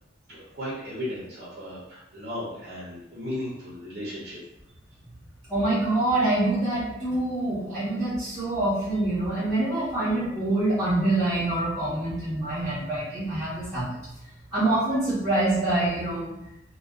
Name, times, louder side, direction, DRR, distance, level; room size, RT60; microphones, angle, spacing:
voice 1, 0.3-4.4, left 1 dB, 50° right, -8 dB, 0.7 m, -35 dB
voice 2, 5.5-14.0 14.5-16.3, right 2 dB, 5° left, -18 dB, 1.0 m, -25 dB
2.5 x 2.3 x 2.3 m, 0.87 s
head